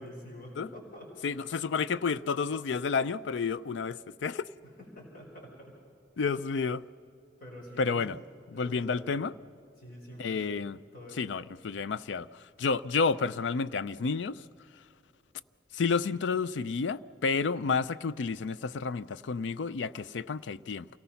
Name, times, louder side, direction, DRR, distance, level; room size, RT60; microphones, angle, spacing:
voice 1, 0.0-1.3 4.6-5.8 7.4-8.2 8.5-9.2 9.8-10.5 10.9-11.3, equal, 55° left, 4.6 m, -47 dB
voice 2, 1.2-4.5 6.2-6.9 7.8-8.2 8.5-9.3 10.2-10.8 11.2-14.5 15.7-20.9, left 5 dB, 80° left, 0.4 m, -30 dB
28.0 x 18.0 x 5.7 m
head